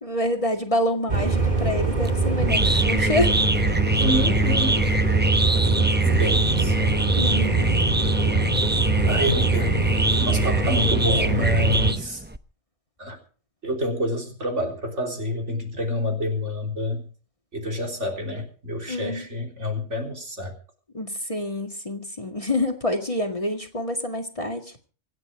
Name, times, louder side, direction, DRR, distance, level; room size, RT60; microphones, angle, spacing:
voice 1, 0.0-3.4 7.1-7.7 18.9-19.3 20.9-24.7, left 1 dB, 25° left, 3 dB, 1.9 m, -27 dB
sound 1, 1.1-11.9, right 3 dB, 35° right, 2.4 m, -23 dB
sound 2, 2.0-12.4, right 1 dB, 10° right, 0.5 m, -25 dB
voice 2, 4.0-4.9 6.0-6.9 9.1-12.2 13.0-13.2 13.6-17.0 17.5-20.5, left 1 dB, 60° right, 2 dB, 4.0 m, -28 dB
26.0 x 9.3 x 4.8 m, 0.40 s
omnidirectional pair, 1.4 m